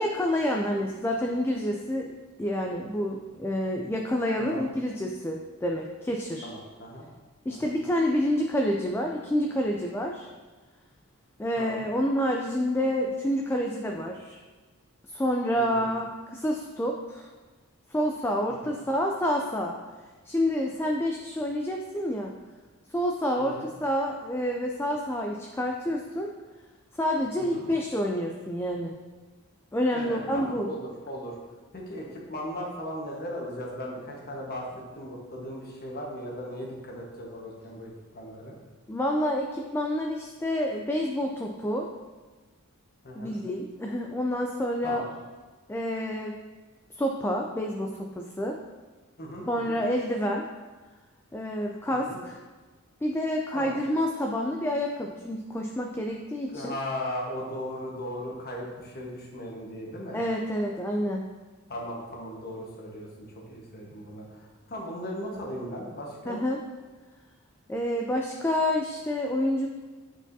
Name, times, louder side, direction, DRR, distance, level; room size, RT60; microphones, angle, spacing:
voice 1, 0.0-6.5 7.5-10.3 11.4-14.4 15.1-17.3 17.9-19.8 20.3-22.3 22.9-26.3 27.0-29.0 29.7-30.7 38.9-41.9 43.2-45.0 45.7-46.4 47.0-48.6 49.5-50.5 51.3-52.4 53.0-56.7 60.1-61.3 66.3-66.6 67.7-69.7, equal, 10° left, 1 dB, 0.3 m, -28 dB
voice 2, 6.4-7.1 7.5-7.7 11.6-11.9 15.5-15.9 18.6-18.7 23.4-23.7 27.4-27.6 29.9-31.3 31.7-38.6 43.0-43.3 44.8-45.1 49.2-49.8 51.9-52.2 53.5-53.8 56.5-60.2 61.7-66.4, equal, 45° left, -2 dB, 1.2 m, -37 dB
8.2 x 4.7 x 2.7 m, 1.3 s
head